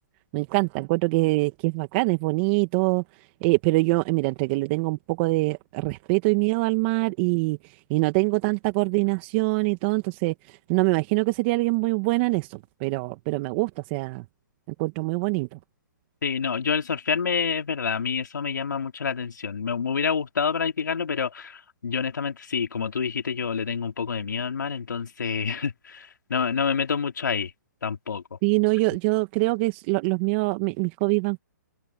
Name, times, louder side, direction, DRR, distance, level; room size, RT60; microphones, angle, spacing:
voice 1, 0.3-14.2 14.8-15.6 28.4-31.4, right 26 dB, 35° right, 2.0 m, -24 dB
voice 2, 16.2-27.5 27.8-28.4, left 6 dB, 80° left, 4.0 m, -28 dB
hypercardioid pair, 140°, 10 cm